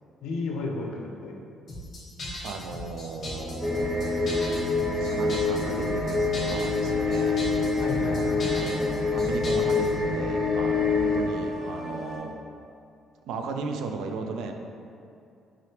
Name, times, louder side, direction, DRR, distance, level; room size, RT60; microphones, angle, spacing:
voice 1, 0.2-1.4 7.8-8.7, left 3 dB, 85° left, 0 dB, 0.5 m, -33 dB
sound 1, 1.7-10.0, left 1 dB, 40° left, 1.2 m, -38 dB
voice 2, 2.4-4.3 4.9-7.4 8.4-12.3 13.3-14.5, right 4 dB, 80° right, 5 dB, 0.3 m, -36 dB
sound 2, 3.1-12.2, equal, 55° right, 1.5 m, -38 dB
sound 3, 3.6-11.2, left 4 dB, 10° right, 0.8 m, -26 dB
3.6 x 3.4 x 2.8 m, 2.5 s
cardioid pair, 145°, 0 cm